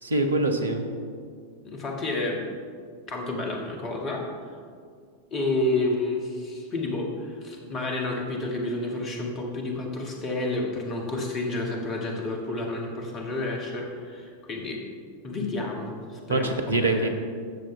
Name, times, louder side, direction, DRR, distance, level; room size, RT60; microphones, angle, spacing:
voice 1, 0.0-0.8 16.3-17.1, right 2 dB, 75° right, 5 dB, 0.9 m, -24 dB
voice 2, 1.6-2.4 3.1-4.6 5.3-14.8 15.2-17.1, left 2 dB, 30° left, 0 dB, 1.7 m, -30 dB
13.0 x 7.5 x 3.3 m, 2.1 s
figure-of-eight pair, 90°, 0 cm